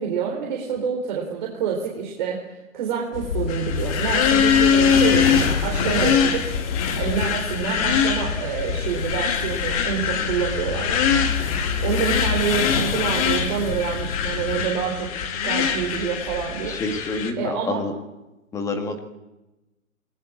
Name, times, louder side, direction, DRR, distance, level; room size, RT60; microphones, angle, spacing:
voice 1, 0.0-2.4 2.7-6.5 7.0-15.1 15.4-16.8 17.4-17.8, right 7 dB, 35° right, -1 dB, 4.1 m, -27 dB
sound 1, 3.1-14.7, left 5 dB, 40° left, 2.4 m, -28 dB
sound 2, 3.5-17.3, left 7 dB, 25° left, 2.1 m, -23 dB
voice 2, 16.6-17.9 18.5-19.0, left 3 dB, 5° left, 6 dB, 1.8 m, -28 dB
28.0 x 20.0 x 8.5 m, 1.0 s
hypercardioid pair, 165°, 42 cm